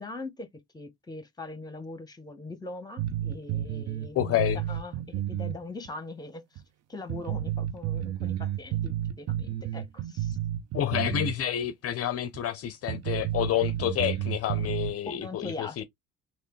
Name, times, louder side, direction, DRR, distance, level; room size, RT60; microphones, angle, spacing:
voice 1, 0.0-6.6 6.9-10.4 15.0-15.8, left 3 dB, 10° left, 1.0 m, -41 dB
sound 1, 3.0-5.6 5.9-6.0 6.6-6.7 7.1-11.4 11.6-11.7 12.3-12.4 12.9-14.9, right 11 dB, 50° right, 0.7 m, -31 dB
voice 2, 4.2-4.6 10.7-15.8, left 12 dB, 50° left, 0.5 m, -29 dB
3.2 x 3.0 x 3.0 m
supercardioid pair, 70°, 32 cm